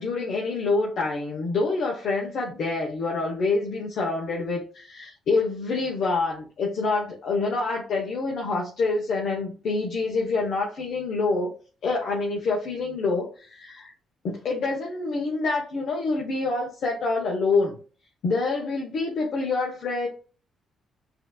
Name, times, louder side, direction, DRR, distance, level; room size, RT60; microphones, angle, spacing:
voice 1, 0.0-11.5 11.8-13.9 14.2-17.8 18.2-20.1, left 3 dB, 65° left, 1.1 m, -26 dB
5.6 x 2.9 x 2.4 m
cardioid pair, 90°, 0 cm